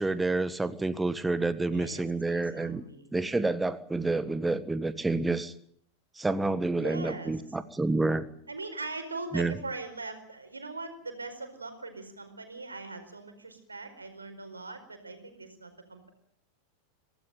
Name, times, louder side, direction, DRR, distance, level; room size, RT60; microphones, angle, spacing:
voice 1, 0.0-2.8 3.1-5.5 6.1-8.3 9.3-9.5, right 2 dB, 10° right, 13 dB, 1.4 m, -29 dB
voice 2, 1.7-3.1 6.8-7.3 8.5-16.1, right 3 dB, 80° right, 8 dB, 4.7 m, -41 dB
24.5 x 17.5 x 9.1 m, 0.63 s
figure-of-eight pair, 90°, 0 cm